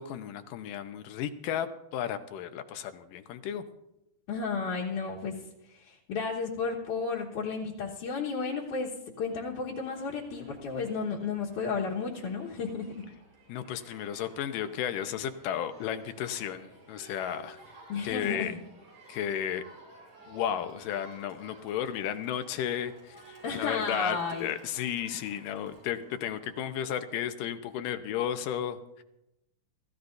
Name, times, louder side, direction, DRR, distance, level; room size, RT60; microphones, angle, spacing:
voice 1, 0.0-3.6 13.5-17.6 18.0-18.6 19.1-19.6 20.3-29.0, left 9 dB, 85° left, 9 dB, 2.6 m, -33 dB
voice 2, 4.3-13.0 17.9-18.6 23.4-24.5, left 5 dB, 70° left, -4 dB, 2.8 m, -33 dB
Crowd, 9.8-26.9, right 2 dB, 60° right, 8.9 m, -54 dB
27.0 x 15.0 x 2.6 m, 0.89 s
omnidirectional pair, 3.7 m